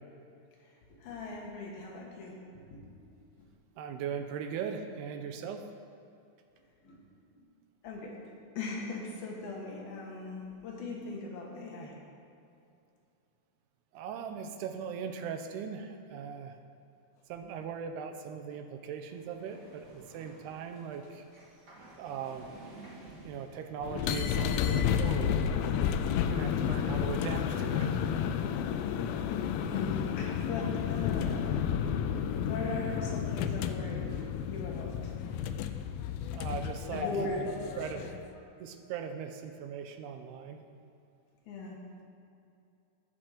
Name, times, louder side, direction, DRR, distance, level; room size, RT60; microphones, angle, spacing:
voice 1, 1.0-2.8 6.8-7.0 7.4-7.5 7.8-8.1 8.6-12.0 23.0-23.4 29.6-31.7 32.5-34.0 34.4-35.1 36.9-37.6 37.9-38.1 41.5-41.8, left 3 dB, 70° left, -2 dB, 3.1 m, -39 dB
voice 2, 3.8-5.6 13.9-16.6 17.3-21.2 22.0-22.5 23.2-26.0 26.3-28.0 36.3-37.1 37.8-38.1 38.6-40.6, right 7 dB, 80° right, 6 dB, 2.6 m, -39 dB
sound 1, 19.1-24.4, right 2 dB, 30° right, 1.7 m, -53 dB
sound 2, 23.8-38.2, left 8 dB, 90° left, 2.1 m, -31 dB
17.5 x 6.0 x 5.0 m, 2.6 s
omnidirectional pair, 4.8 m